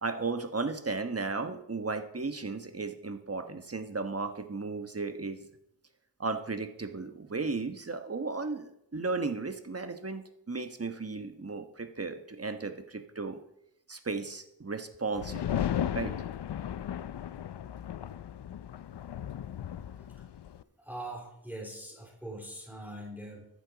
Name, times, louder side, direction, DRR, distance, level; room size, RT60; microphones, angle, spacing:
voice 1, 0.0-5.5 6.2-13.4 13.9-15.7 15.9-16.1, right 3 dB, 35° right, 7 dB, 1.2 m, -35 dB
sound 1, 15.2-20.6, left 10 dB, 75° left, 0.6 m, -35 dB
voice 2, 19.9-20.3 20.8-23.5, right 1 dB, 5° right, 1 dB, 2.8 m, -42 dB
14.0 x 9.9 x 4.0 m, 0.79 s
wide cardioid pair, 55°, 41 cm